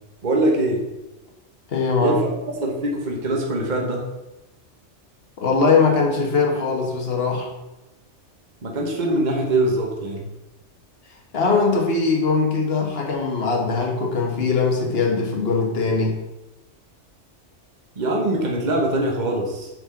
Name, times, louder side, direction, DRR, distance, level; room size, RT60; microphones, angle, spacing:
voice 1, 0.2-0.8 2.0-2.3 2.6-4.1 8.6-10.3 18.0-19.7, right 1 dB, 40° right, 0 dB, 1.3 m, -23 dB
voice 2, 1.7-2.2 5.4-7.5 11.3-16.1, left 4 dB, 55° left, 0 dB, 1.6 m, -21 dB
6.5 x 4.5 x 5.7 m, 1.0 s
omnidirectional pair, 1.2 m